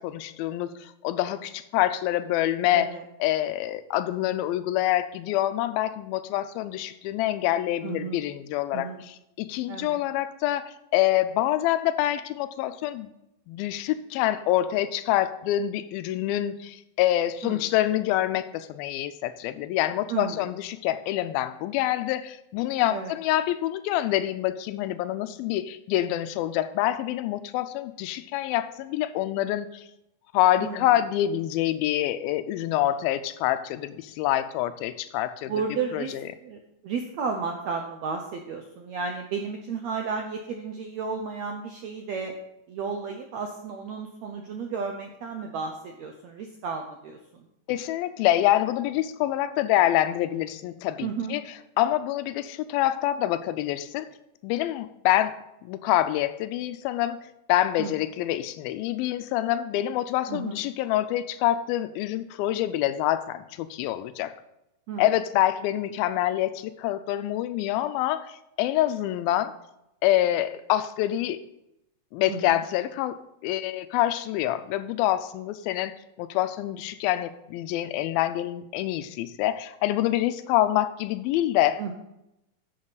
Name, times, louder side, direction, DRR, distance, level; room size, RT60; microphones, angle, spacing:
voice 1, 0.0-2.9 3.2-13.1 13.5-29.8 30.3-35.5 35.9-36.3 47.7-51.4 51.8-54.1 54.4-55.4 55.6-57.2 57.5-64.4 65.0-69.5 70.0-71.4 72.1-73.2 73.4-81.9, left 13 dB, 90° left, 13 dB, 2.4 m, -26 dB
voice 2, 2.7-3.0 7.8-8.2 8.7-9.0 9.7-10.0 17.4-17.6 20.1-20.4 22.9-23.1 30.6-30.9 35.5-36.1 36.4-42.3 42.7-47.5 51.0-51.4 57.8-57.9 60.3-60.6 64.9-65.0 72.3-72.6 81.8-81.9, right 5 dB, 85° right, 3 dB, 1.5 m, -33 dB
11.0 x 7.1 x 4.0 m, 0.86 s
omnidirectional pair, 4.2 m